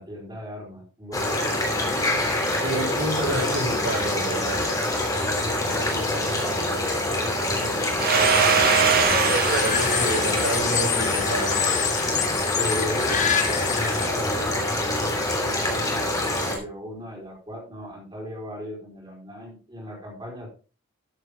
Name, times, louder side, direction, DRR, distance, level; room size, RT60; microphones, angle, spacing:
voice 1, 0.0-1.5 5.2-7.8 12.6-20.5, equal, 20° right, -2 dB, 4.1 m, -37 dB
sound 1, 1.1-16.6, left 1 dB, 15° left, 3.1 m, -25 dB
voice 2, 2.6-4.7 8.1-11.6, right 1 dB, 75° right, -3 dB, 6.8 m, -29 dB
Domestic sounds home sounds, 8.0-12.4, right 6 dB, 45° right, 1.8 m, -24 dB
sound 2, 8.1-14.1, left 9 dB, 35° left, 0.7 m, -28 dB
13.5 x 7.7 x 3.6 m, 0.35 s
head